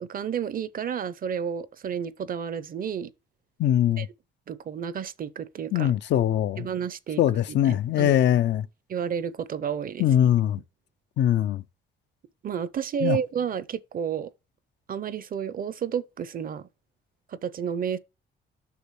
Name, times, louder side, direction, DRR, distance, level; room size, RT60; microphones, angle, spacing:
voice 1, 0.0-3.1 4.0-4.1 4.5-5.9 6.6-7.2 7.6-8.1 8.9-10.0 12.4-14.3 14.9-16.7 17.3-18.0, right 8 dB, 45° right, 0.6 m, -31 dB
voice 2, 3.6-4.1 5.7-6.7 7.2-8.7 10.0-10.6 11.2-11.6 13.0-13.2, left 11 dB, 65° left, 0.4 m, -22 dB
8.3 x 6.1 x 3.1 m
cardioid pair, 90°, 20 cm